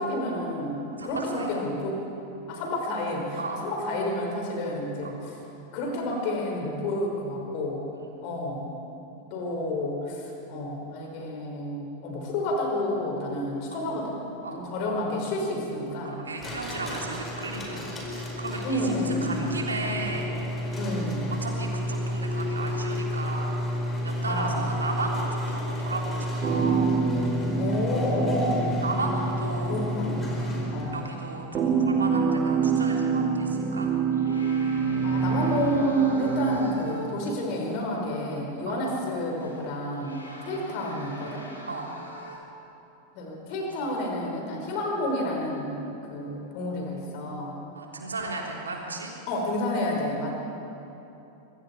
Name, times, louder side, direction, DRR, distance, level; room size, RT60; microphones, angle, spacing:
voice 1, 0.0-2.0 2.5-5.4 5.7-7.9 8.2-8.7 9.3-14.2 14.5-16.3 18.6-19.5 20.8-21.3 24.3-24.6 27.6-28.8 29.7-30.4 30.7-31.0 35.0-41.5 43.1-47.6 49.3-50.3, left 1 dB, 45° left, 0 dB, 5.5 m, -30 dB
voice 2, 1.0-1.5 3.4-3.6 5.0-5.1 7.9-8.1 9.1-9.3 13.7-13.8 14.4-14.7 16.0-20.3 21.4-26.9 28.8-29.8 30.9-33.9 38.7-38.8 40.3-40.8 41.7-41.9 43.4-43.7 47.7-49.1, right 3 dB, 75° right, -1 dB, 3.5 m, -35 dB
sound 1, 16.4-31.1, left 1 dB, 20° left, 4.7 m, -31 dB
sound 2, 26.4-36.6, right 6 dB, 30° right, 2.0 m, -27 dB
sound 3, 33.6-33.7 34.1-37.3 37.7-37.8 39.4-42.4, left 1 dB, 80° left, 3.7 m, -45 dB
26.0 x 23.0 x 4.7 m, 3.0 s
figure-of-eight pair, 90°, 0 cm